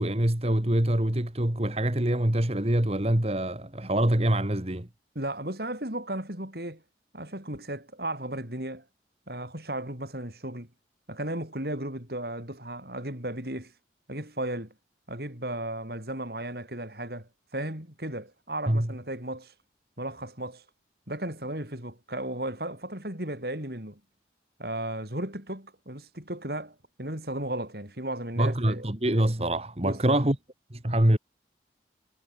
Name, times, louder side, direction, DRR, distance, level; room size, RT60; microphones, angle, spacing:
voice 1, 0.0-4.9 18.7-18.9 28.4-30.4 30.7-31.2, right 1 dB, 35° right, 1.8 m, -25 dB
voice 2, 5.1-6.8 7.1-8.8 9.3-10.7 11.1-13.7 14.1-14.7 15.1-19.5 20.0-20.6 21.1-24.0 24.6-28.8 29.8-30.2, right 1 dB, 55° right, 5.9 m, -35 dB
head